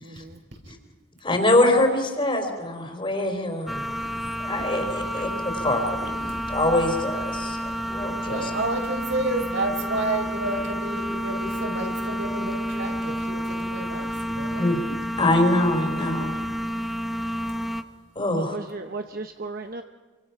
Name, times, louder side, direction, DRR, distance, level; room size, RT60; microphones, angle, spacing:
voice 1, 0.0-0.4 5.1-5.2 18.3-19.8, right 3 dB, 45° right, 6 dB, 1.0 m, -35 dB
voice 2, 1.2-3.9 4.4-8.5 14.6-14.8 15.2-16.4 18.2-18.6, left 1 dB, 25° left, 5 dB, 3.8 m, -24 dB
sound 1, 3.7-17.8, equal, ahead, 1.2 m, -30 dB
voice 3, 8.2-14.7, right 2 dB, 65° right, 3 dB, 4.6 m, -30 dB
28.0 x 25.0 x 5.8 m, 1.4 s
head